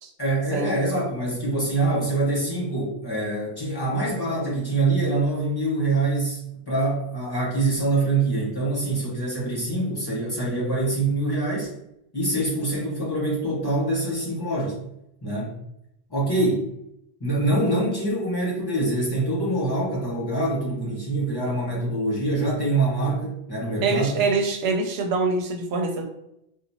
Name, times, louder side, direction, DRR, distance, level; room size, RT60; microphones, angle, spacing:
voice 1, 0.2-11.7 12.1-14.8 15.2-15.6 16.1-16.6 17.2-24.2, right 2 dB, 20° left, -6 dB, 1.3 m, -25 dB
voice 2, 23.8-26.0, right 3 dB, 75° right, 5 dB, 0.8 m, -24 dB
4.0 x 2.3 x 2.7 m, 0.82 s
omnidirectional pair, 1.1 m